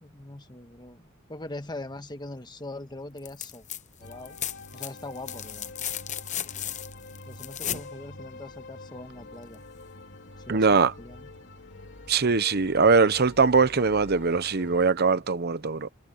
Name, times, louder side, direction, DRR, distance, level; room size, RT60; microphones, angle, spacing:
voice 1, 0.0-3.6 4.0-4.4 4.7-5.7 7.3-9.6 10.5-11.3, left 2 dB, 20° left, 1.4 m, -41 dB
sound 1, 3.2-3.8 4.1-7.9 9.5-9.6, left 10 dB, 35° left, 0.9 m, -35 dB
sound 2, 4.0-14.9, left 2 dB, 60° left, 3.4 m, -46 dB
voice 2, 10.5-10.9 12.1-15.9, right 4 dB, 50° right, 0.9 m, -22 dB
head